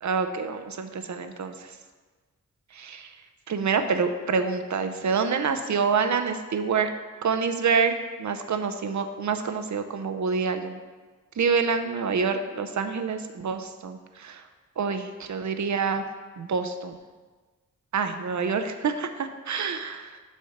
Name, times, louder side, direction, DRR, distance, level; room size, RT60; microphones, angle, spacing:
voice 1, 0.0-1.8 2.7-3.1 3.5-6.9 7.2-10.8 11.4-14.4 14.8-16.0 16.4-17.0 17.9-20.2, right 5 dB, 60° right, 7 dB, 0.7 m, -27 dB
6.5 x 4.4 x 6.5 m, 1.4 s
wide cardioid pair, 85°, 33 cm